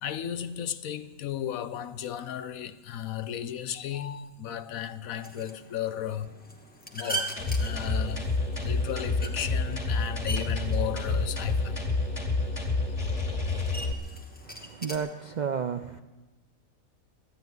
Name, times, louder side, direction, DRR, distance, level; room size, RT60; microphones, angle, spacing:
voice 1, 0.0-6.3 6.9-8.3 8.6-11.8, left 10 dB, 75° left, 1.1 m, -35 dB
sound 1, 5.2-15.0, right 2 dB, 5° left, 1.2 m, -41 dB
sound 2, 7.4-13.9, left 3 dB, 25° left, 2.2 m, -29 dB
voice 2, 14.4-16.0, right 6 dB, 55° right, 0.5 m, -32 dB
13.5 x 11.0 x 9.3 m
omnidirectional pair, 1.5 m